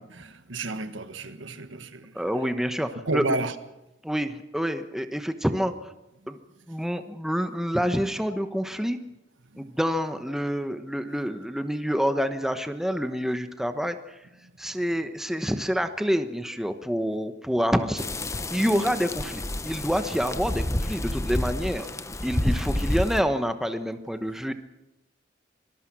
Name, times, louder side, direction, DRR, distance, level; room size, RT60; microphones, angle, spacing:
voice 1, 0.1-2.5 3.0-3.6 9.5-9.7 14.4-14.5 18.7-19.0, right 2 dB, 85° right, 10 dB, 1.5 m, -32 dB
voice 2, 2.1-3.2 4.0-5.7 6.3-6.4 6.7-9.0 9.6-14.2 14.6-18.1 18.5-21.9 22.2-24.5, equal, ahead, 8 dB, 1.1 m, -27 dB
sound 1, 18.0-23.2, left 1 dB, 15° left, 0.8 m, -29 dB
25.0 x 19.5 x 6.2 m, 0.93 s
head